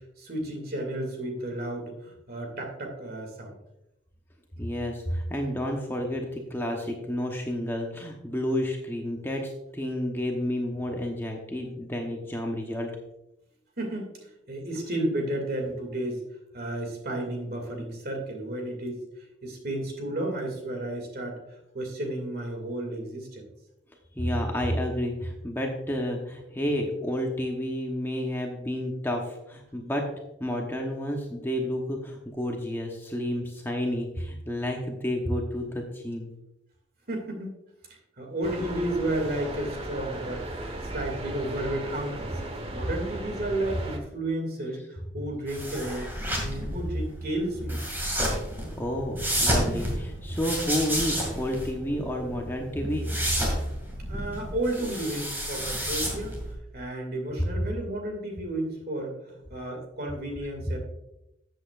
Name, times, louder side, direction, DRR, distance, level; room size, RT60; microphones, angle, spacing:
voice 1, 0.2-3.6 13.8-16.2 16.5-19.0 19.4-21.4 21.7-23.4 37.1-37.5 38.2-40.4 40.9-42.4 42.7-46.1 46.3-47.8 54.1-56.3 56.7-60.8, right 1 dB, 50° right, 2 dB, 2.3 m, -32 dB
voice 2, 4.6-12.9 24.1-30.0 30.4-36.3 48.6-53.1, equal, 10° left, 1 dB, 0.9 m, -30 dB
sound 1, 38.4-44.0, right 1 dB, 30° right, 1.2 m, -36 dB
sound 2, 45.5-56.5, equal, 10° right, 2.3 m, -30 dB
13.5 x 7.9 x 2.5 m, 0.87 s
head